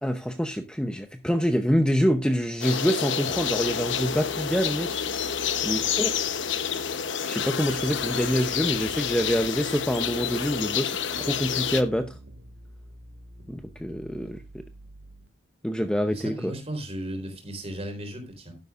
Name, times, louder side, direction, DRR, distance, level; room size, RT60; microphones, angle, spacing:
voice 1, 0.0-5.0 5.6-6.1 7.2-12.2 13.5-14.6 15.6-16.5, equal, 5° left, 0.7 m, -26 dB
sound 1, 2.6-11.8, left 8 dB, 65° left, 0.9 m, -29 dB
sound 2, 3.3-15.3, right 1 dB, 60° right, 2.2 m, -48 dB
voice 2, 16.1-18.6, right 1 dB, 30° right, 3.9 m, -35 dB
12.0 x 10.5 x 2.5 m
head